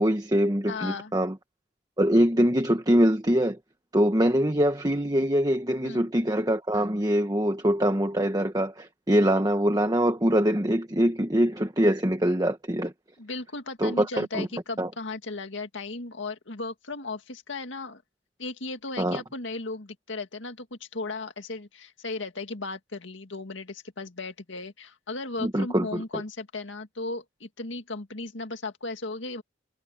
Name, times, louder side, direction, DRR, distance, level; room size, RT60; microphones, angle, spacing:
voice 1, 0.0-1.3 2.0-3.6 3.9-12.9 13.8-14.5 14.8-14.9 19.0-19.2 25.4-26.2, equal, 20° right, 1.4 m, -23 dB
voice 2, 0.7-1.1 5.8-6.1 13.2-18.0 18.4-29.4, left 3 dB, 80° left, 2.0 m, -36 dB
head